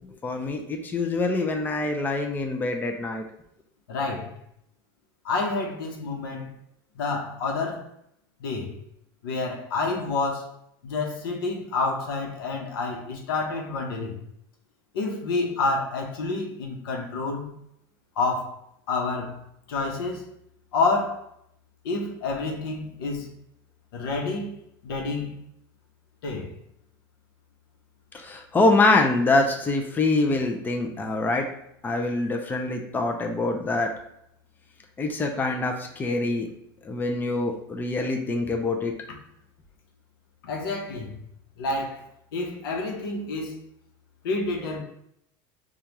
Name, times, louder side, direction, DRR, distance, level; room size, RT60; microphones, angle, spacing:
voice 1, 0.1-3.2 28.1-31.5 31.8-33.9 35.0-36.5 36.8-38.9, left 2 dB, 15° left, 0.5 m, -25 dB
voice 2, 3.9-4.3 5.2-6.5 6.9-7.9 8.4-8.7 9.2-10.5 10.8-14.2 14.9-17.6 18.2-18.5 18.9-19.4 19.7-20.3 20.7-21.2 21.8-23.4 23.9-24.5 24.8-25.4 26.2-26.5 40.4-41.2 41.6-42.0 42.3-43.6 44.2-44.8, left 3 dB, 90° left, 0.9 m, -28 dB
5.0 x 2.4 x 2.9 m
supercardioid pair, 115°, 12 cm